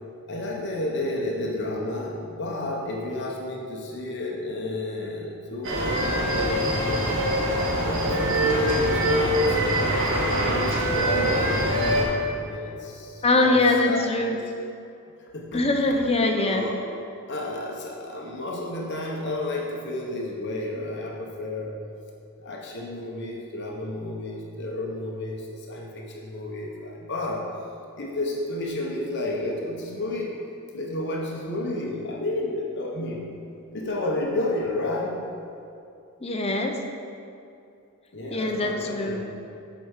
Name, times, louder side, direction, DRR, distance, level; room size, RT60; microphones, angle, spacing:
voice 1, 0.3-7.1 7.7-14.4 15.2-15.7 16.2-16.8 17.3-21.8 22.4-27.4 28.0-30.3 30.7-33.2 33.7-35.2 38.1-39.2, left 2 dB, 50° left, -2 dB, 1.0 m, -31 dB
sound 1, 5.6-12.0, right 1 dB, 60° right, 1.6 m, -23 dB
voice 2, 13.2-14.4 15.5-16.6 36.2-36.8 38.3-39.2, left 2 dB, 25° left, 3 dB, 0.7 m, -22 dB
7.9 x 4.7 x 6.4 m, 2.6 s
head